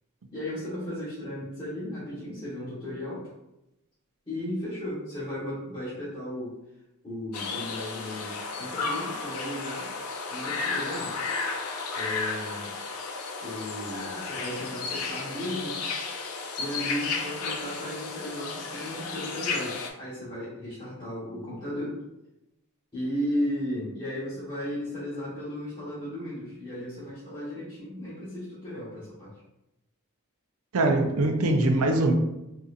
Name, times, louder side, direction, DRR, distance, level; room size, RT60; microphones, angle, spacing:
voice 1, 0.3-3.3 4.3-6.5 7.0-9.9 10.3-11.2 11.9-12.7 13.4-15.8 16.6-22.0 22.9-29.3, left 1 dB, 25° left, -12 dB, 1.1 m, -35 dB
sound 1, 7.3-19.9, left 4 dB, 90° left, 0.5 m, -33 dB
voice 2, 30.7-32.1, right 2 dB, 85° right, 3 dB, 0.5 m, -22 dB
3.9 x 2.6 x 2.4 m, 0.92 s
head